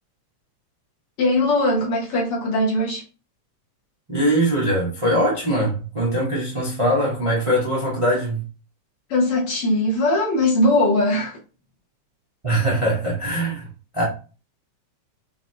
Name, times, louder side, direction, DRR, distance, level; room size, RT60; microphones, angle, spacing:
voice 1, 1.2-3.0 9.1-11.4, left 1 dB, 60° left, 1.9 m, -20 dB
voice 2, 4.1-8.4 12.4-13.7 13.9-14.0, right 1 dB, 45° right, 0.4 m, -21 dB
5.7 x 2.9 x 2.9 m
omnidirectional pair, 3.3 m